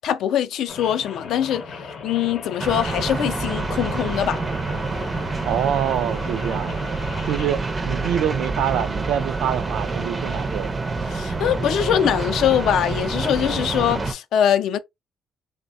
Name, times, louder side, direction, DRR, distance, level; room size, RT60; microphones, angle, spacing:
voice 1, 0.0-1.6 2.0-4.4 11.1-14.8, left 10 dB, 65° left, 0.4 m, -22 dB
Rain, 0.7-7.5, left 4 dB, 40° left, 0.7 m, -37 dB
sound 1, 2.6-14.1, right 3 dB, 20° right, 0.4 m, -27 dB
voice 2, 5.4-6.7 7.2-10.7, right 10 dB, 85° right, 0.3 m, -25 dB
3.4 x 2.1 x 2.5 m
cardioid pair, 180°, 0 cm